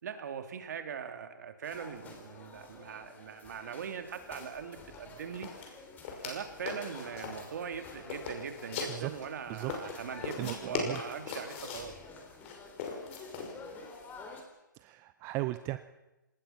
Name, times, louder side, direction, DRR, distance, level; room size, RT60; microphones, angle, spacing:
voice 1, 0.0-5.5 6.2-11.9, right 7 dB, 60° right, 7 dB, 3.1 m, -41 dB
sound 1, 1.6-14.4, left 3 dB, 15° left, 3.7 m, -50 dB
sound 2, 4.4-4.5 4.8-5.0 5.3-6.4 6.7-7.4 7.8-9.2 9.7-11.9 12.4-13.5, left 5 dB, 40° left, 5.6 m, -39 dB
voice 2, 10.4-11.0 14.7-15.8, right 18 dB, 25° right, 11 dB, 0.7 m, -36 dB
24.5 x 19.5 x 5.9 m, 1.0 s
hypercardioid pair, 140°, 11 cm